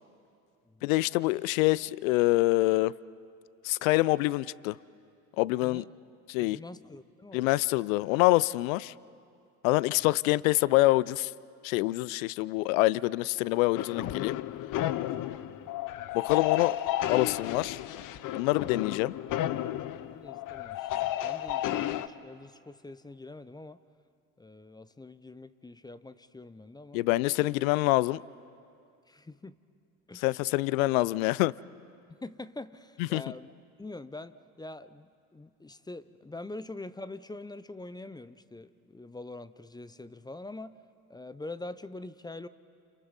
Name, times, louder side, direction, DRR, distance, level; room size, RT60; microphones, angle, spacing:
voice 1, 0.8-2.9 3.6-4.8 5.4-5.8 6.3-6.6 7.3-8.9 9.6-11.3 11.6-14.4 16.1-16.8 17.1-17.8 18.3-19.1 26.9-28.2 30.2-31.5 33.1-33.2, left 19 dB, 75° left, 22 dB, 0.5 m, -26 dB
voice 2, 6.4-7.5 10.0-10.1 15.4-15.8 20.1-23.8 24.4-27.0 29.1-29.6 30.1-30.3 32.1-33.5 33.8-40.7 41.1-42.5, left 2 dB, 10° left, 15 dB, 0.6 m, -44 dB
sound 1, 13.7-22.1, left 13 dB, 50° left, 0.8 m, -32 dB
29.5 x 29.0 x 4.1 m, 2.4 s
hypercardioid pair, 70°, 41 cm